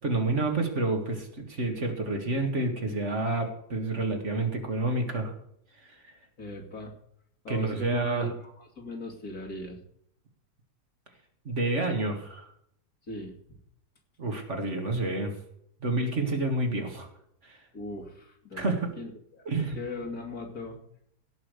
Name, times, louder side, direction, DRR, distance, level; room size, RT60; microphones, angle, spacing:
voice 1, 0.0-5.3 5.9-6.0 7.5-8.3 11.5-12.5 14.2-15.3 15.8-17.1 17.4-17.6 18.5-19.0 19.5-19.8, right 2 dB, 45° right, 4 dB, 2.3 m, -29 dB
voice 2, 6.4-6.9 7.4-9.8 13.1-13.3 17.7-20.8, left 2 dB, 65° left, 0 dB, 3.0 m, -39 dB
17.0 x 5.7 x 6.7 m, 0.69 s
omnidirectional pair, 1.7 m